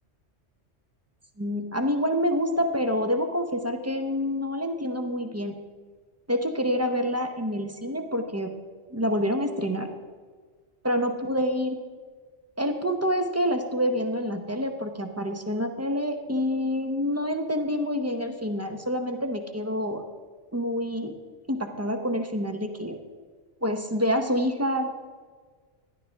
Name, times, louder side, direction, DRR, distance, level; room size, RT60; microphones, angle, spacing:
voice 1, 1.4-5.6 6.3-8.5 8.9-9.9 10.8-11.8 12.6-20.0 20.5-21.1 21.5-23.0 23.6-24.9, equal, 20° right, 6 dB, 0.5 m, -27 dB
12.5 x 11.0 x 3.4 m, 1.5 s
omnidirectional pair, 1.2 m